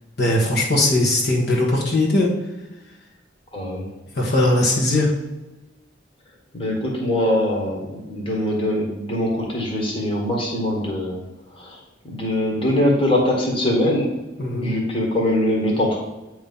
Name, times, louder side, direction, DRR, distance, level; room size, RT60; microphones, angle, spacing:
voice 1, 0.2-2.3 4.1-5.1 14.4-14.8, left 1 dB, 60° left, -3 dB, 1.4 m, -19 dB
voice 2, 3.5-3.9 6.5-11.2 11.5-14.1 14.6-16.0, left 1 dB, 30° left, -2 dB, 1.5 m, -22 dB
8.8 x 3.1 x 5.4 m, 1.1 s
head